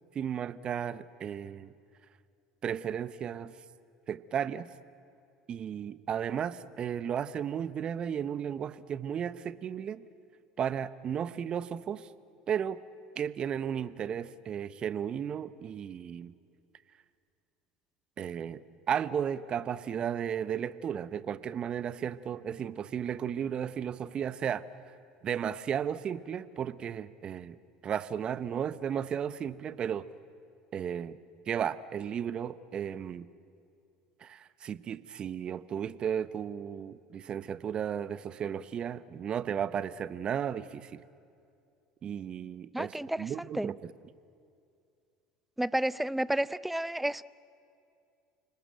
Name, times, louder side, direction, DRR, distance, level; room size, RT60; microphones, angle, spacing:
voice 1, 0.1-1.7 2.6-3.5 4.1-4.7 5.5-10.0 10.6-12.1 12.5-12.8 13.2-16.3 18.2-24.6 25.2-27.6 27.8-30.1 30.7-31.2 31.5-33.3 34.2-41.0 42.0-43.9, right 8 dB, 40° right, 16 dB, 0.9 m, -34 dB
voice 2, 42.7-43.7 45.6-47.2, right 1 dB, 5° right, 20 dB, 0.5 m, -31 dB
29.0 x 19.0 x 9.2 m, 2.5 s
figure-of-eight pair, 70°, 3 cm